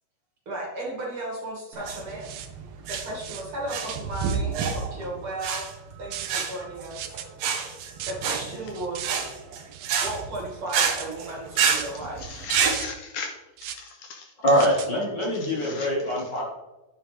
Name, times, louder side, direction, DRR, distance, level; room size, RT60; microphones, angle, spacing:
voice 1, 0.5-2.3 2.8-5.7 6.0-7.2 8.1-9.3 10.0-12.4 14.9-16.2, right 1 dB, 40° right, -3 dB, 3.0 m, -35 dB
sound 1, 1.7-12.8, right 6 dB, 90° right, 2.8 m, -28 dB
sound 2, 2.1-2.5 2.9-3.4 3.9-4.4 6.1-6.3 6.9-7.3 7.8-8.1 8.7-9.1 9.7-10.1 10.7-11.1 11.7-12.0 12.6-12.9 13.6-13.9 14.5-14.9, right 11 dB, 70° right, 1.9 m, -37 dB
voice 2, 12.2-13.3 13.6-14.3 15.4-16.1, left 5 dB, 75° left, 4 dB, 1.9 m, -38 dB
voice 3, 14.4-16.4, equal, 40° left, -4 dB, 1.9 m, -23 dB
9.9 x 7.6 x 3.4 m, 1.1 s
omnidirectional pair, 3.8 m